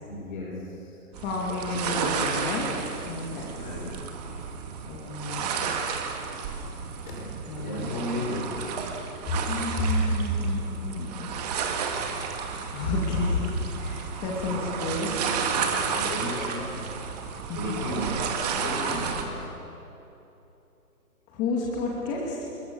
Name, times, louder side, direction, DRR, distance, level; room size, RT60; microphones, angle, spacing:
voice 1, 0.0-1.0 3.5-4.1 7.1-7.3 7.6-8.8 14.5-14.7 15.7-16.9 17.5-19.5, left 1 dB, 30° left, -1 dB, 6.0 m, -35 dB
voice 2, 1.1-2.7 3.1-3.5 4.9-5.7 7.5-8.2 9.3-11.3 12.7-15.1 17.5-17.8 18.9-19.1 21.3-22.4, left 2 dB, 15° left, -3 dB, 2.6 m, -30 dB
sound 1, 1.1-19.2, right 6 dB, 25° right, 2.2 m, -32 dB
29.0 x 22.0 x 7.1 m, 2.9 s
hypercardioid pair, 160°, 47 cm